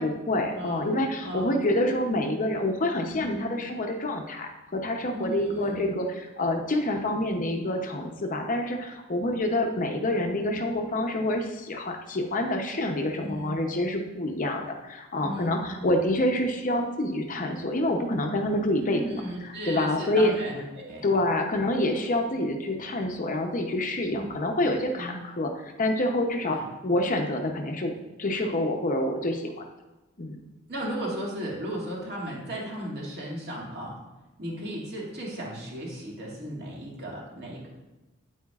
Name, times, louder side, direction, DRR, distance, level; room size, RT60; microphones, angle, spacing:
voice 1, 0.0-20.3 21.0-27.9 28.2-29.5 30.2-30.4, left 1 dB, 40° left, 4 dB, 0.7 m, -27 dB
voice 2, 0.5-0.8 1.2-1.6 3.1-3.4 5.1-5.9 10.6-10.7 13.2-13.6 15.2-15.9 18.7-21.1 24.0-24.2 24.9-25.2 26.5-26.6 30.7-34.0 34.4-37.7, equal, 50° right, -4 dB, 2.2 m, -36 dB
9.1 x 8.6 x 2.4 m, 1.1 s
head